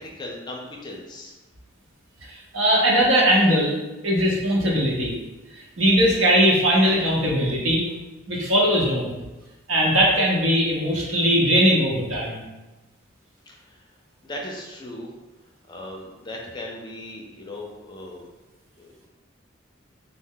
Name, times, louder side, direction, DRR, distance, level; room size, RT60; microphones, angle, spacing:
voice 1, 0.0-1.3 13.5-13.8 14.2-15.1 15.7-18.3 18.8-19.1, left 1 dB, 20° left, -1 dB, 0.5 m, -37 dB
voice 2, 2.3-3.8 4.0-5.1 5.5-7.8 8.3-9.1 9.7-12.4, equal, 80° right, -3 dB, 0.9 m, -20 dB
3.1 x 2.1 x 3.7 m, 1.1 s
head